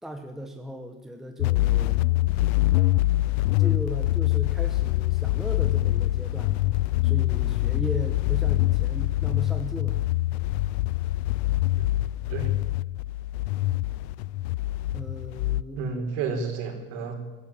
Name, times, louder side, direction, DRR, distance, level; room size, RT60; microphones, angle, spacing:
voice 1, 0.0-2.0 3.6-6.6 7.0-10.0 14.9-15.8, right 1 dB, ahead, 5 dB, 1.0 m, -37 dB
sound 1, 1.4-15.6, left 16 dB, 65° left, 0.7 m, -24 dB
voice 2, 15.8-17.1, right 4 dB, 50° right, 5 dB, 4.7 m, -31 dB
23.0 x 16.0 x 8.8 m, 1.2 s
cardioid pair, 175°, 34 cm